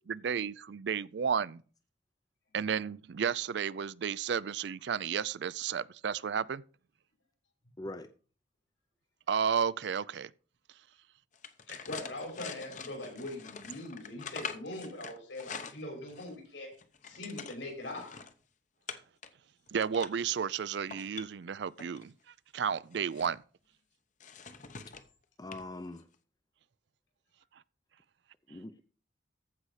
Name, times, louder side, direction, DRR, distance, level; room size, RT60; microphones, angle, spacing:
voice 1, 0.1-1.6 2.5-6.6 9.3-10.3 19.7-22.1 22.5-23.4, right 7 dB, 65° right, 0.4 m, -32 dB
voice 2, 7.8-8.1 25.4-26.0 28.5-28.8, left 2 dB, 20° left, 0.5 m, -42 dB
sound 1, 11.3-16.4 16.7-18.3 18.9-19.3 19.7-20.3 20.8-22.0 22.7-23.4 24.2-25.1 25.5-25.7 26.0-26.2, left 6 dB, 40° left, 0.8 m, -45 dB
voice 3, 11.7-16.8 17.0-18.3, left 1 dB, 80° left, 6.4 m, -42 dB
14.5 x 5.6 x 4.9 m
head